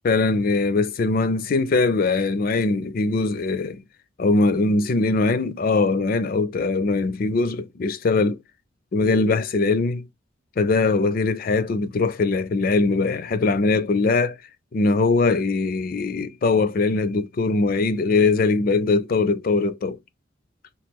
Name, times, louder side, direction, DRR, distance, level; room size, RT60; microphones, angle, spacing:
voice 1, 0.0-3.8 4.2-8.4 8.9-10.1 10.6-14.4 14.7-20.0, left 3 dB, 50° left, 0.4 m, -21 dB
3.0 x 2.8 x 3.4 m
head